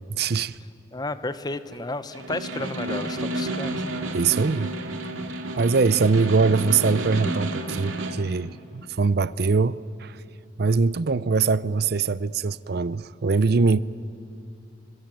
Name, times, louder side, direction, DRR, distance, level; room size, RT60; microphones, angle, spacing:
voice 1, 0.1-0.6 4.1-4.7 5.6-10.2 10.6-13.8, right 4 dB, 50° right, 0.5 m, -22 dB
voice 2, 0.9-3.8, left 2 dB, 20° left, 0.8 m, -32 dB
Snare drum, 2.1-8.3, right 1 dB, 80° right, 2.3 m, -31 dB
28.0 x 24.0 x 7.7 m
head